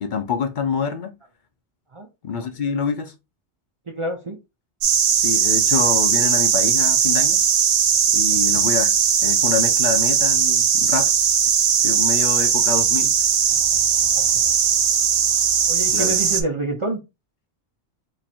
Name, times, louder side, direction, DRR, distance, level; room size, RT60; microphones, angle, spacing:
voice 1, 0.0-1.1 2.2-3.1 5.2-7.4 8.1-8.9 9.2-11.1 11.8-13.1 15.9-16.2, left 6 dB, 55° left, 0.6 m, -26 dB
voice 2, 3.9-4.4 8.5-8.6 14.2-14.3 15.7-17.0, right 2 dB, 45° right, 0.4 m, -27 dB
sound 1, 4.8-16.4, right 7 dB, 70° right, 0.9 m, -18 dB
3.0 x 2.5 x 4.1 m
omnidirectional pair, 1.2 m